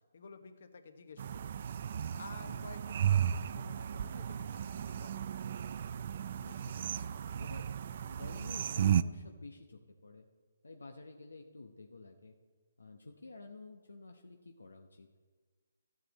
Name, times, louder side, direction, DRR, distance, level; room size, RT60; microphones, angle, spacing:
voice 1, 0.1-1.5 2.1-5.2, left 4 dB, 60° left, 8 dB, 1.2 m, -53 dB
sound 1, 1.2-9.0, right 9 dB, 45° right, 0.4 m, -34 dB
voice 2, 2.4-2.8 6.4-7.1 7.4-10.2 10.6-12.3 12.8-15.1, left 3 dB, 85° left, 4 dB, 0.9 m, -51 dB
13.5 x 9.1 x 4.1 m, 1.4 s
hypercardioid pair, 150°, 0 cm